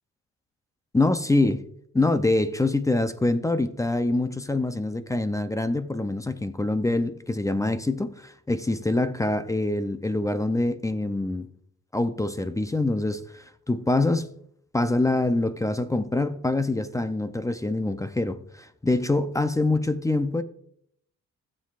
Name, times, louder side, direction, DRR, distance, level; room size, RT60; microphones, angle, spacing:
voice 1, 0.9-1.6 1.9-11.5 11.9-14.3 14.7-20.4, left 2 dB, 10° left, 0.5 m, -25 dB
14.5 x 7.5 x 2.4 m
cardioid pair, 90°, 30 cm